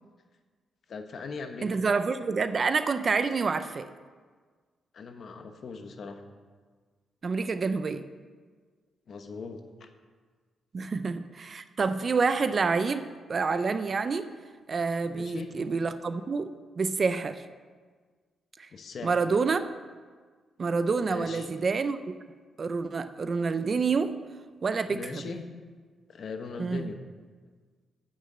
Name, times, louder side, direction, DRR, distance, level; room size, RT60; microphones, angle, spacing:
voice 1, 0.9-1.8 4.9-6.2 9.1-9.9 10.8-10.9 15.0-15.5 18.7-19.2 21.1-21.5 24.9-25.4 26.1-27.0, left 4 dB, 50° left, 6 dB, 1.0 m, -40 dB
voice 2, 1.6-3.9 7.2-8.0 10.7-14.3 14.7-17.4 18.6-18.7 19.0-19.6 20.6-22.1 22.6-24.2 24.6-25.3 26.6-26.9, right 4 dB, 35° right, 11 dB, 0.5 m, -28 dB
9.5 x 6.4 x 7.8 m, 1.5 s
cardioid pair, 140°, 0 cm